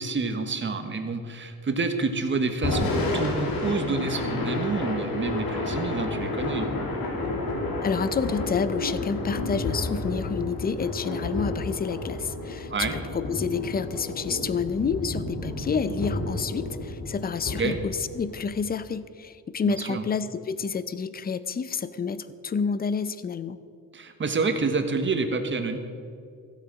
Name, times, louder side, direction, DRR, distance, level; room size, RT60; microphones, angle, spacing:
voice 1, 0.0-6.8 12.7-12.9 17.5-17.8 19.6-20.0 23.9-25.8, right 4 dB, 35° right, 7 dB, 1.2 m, -28 dB
Thunder / Rain, 2.5-18.7, left 2 dB, 75° left, 2.8 m, -31 dB
voice 2, 7.8-23.6, left 5 dB, 25° left, 15 dB, 0.5 m, -29 dB
15.0 x 8.4 x 6.3 m, 2.3 s
cardioid pair, 125°, 35 cm